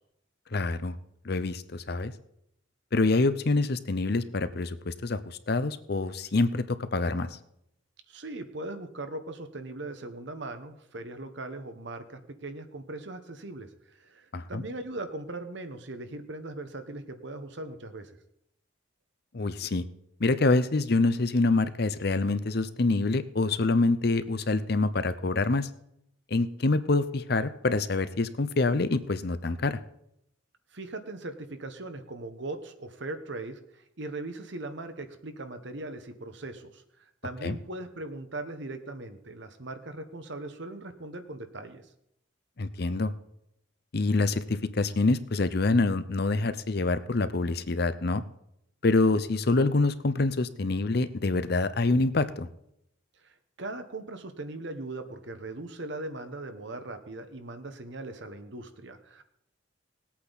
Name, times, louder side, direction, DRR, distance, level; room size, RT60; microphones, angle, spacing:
voice 1, 0.5-0.9 1.2-2.1 2.9-7.4 14.3-14.6 19.3-19.8 20.2-25.7 26.3-29.8 37.4-37.6 42.6-43.1 43.9-48.2 48.8-52.5, left 3 dB, 50° left, 12 dB, 0.7 m, -26 dB
voice 2, 8.1-18.1 30.7-41.8 53.2-59.2, right 2 dB, 65° right, 9 dB, 1.2 m, -39 dB
19.5 x 8.5 x 4.1 m, 0.77 s
head